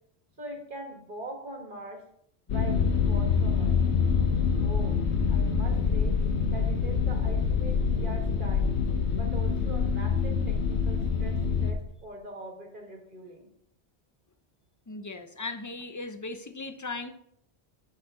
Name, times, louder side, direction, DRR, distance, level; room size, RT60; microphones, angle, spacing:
voice 1, 0.4-2.0 2.5-3.8 4.6-5.0 5.3-6.2 6.5-8.7 9.1-13.5, right 2 dB, 50° right, 2 dB, 1.8 m, -42 dB
sound 1, 2.5-11.7, left 5 dB, 80° left, 1.1 m, -25 dB
voice 2, 14.9-17.1, left 3 dB, 25° left, 8 dB, 0.4 m, -37 dB
8.1 x 7.1 x 3.7 m, 0.70 s
omnidirectional pair, 1.1 m